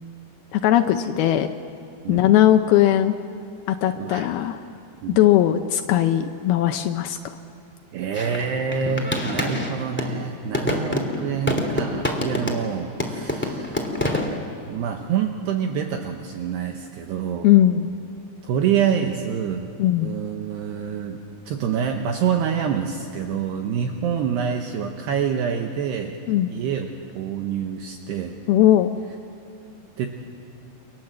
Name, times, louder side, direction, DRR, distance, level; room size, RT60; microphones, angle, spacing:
voice 1, 0.5-1.5 2.1-3.2 3.7-4.6 5.2-7.4 17.4-17.9 19.8-20.1 26.3-26.5 28.5-28.9, left 12 dB, 90° left, 7 dB, 2.1 m, -18 dB
voice 2, 4.0-4.3 5.0-5.2 7.9-14.2 14.7-17.5 18.4-19.7 20.0-21.2 21.5-26.2 26.5-28.4 30.0-30.1, right 7 dB, 70° right, 4 dB, 2.9 m, -26 dB
sound 1, 8.1-10.2 10.5-12.7 13.0-14.4, left 1 dB, 5° left, 1.1 m, -26 dB
29.5 x 26.0 x 7.8 m, 2.5 s
omnidirectional pair, 5.4 m